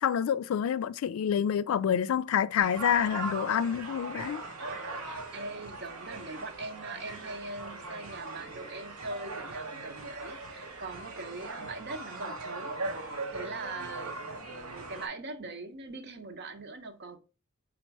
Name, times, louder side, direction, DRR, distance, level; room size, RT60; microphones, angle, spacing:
voice 1, 0.0-4.4, left 8 dB, 70° left, 0.3 m, -27 dB
sound 1, 2.6-15.1, right 2 dB, 85° right, 1.0 m, -39 dB
voice 2, 5.0-17.2, right 3 dB, 55° right, 0.7 m, -42 dB
4.1 x 2.5 x 4.5 m
head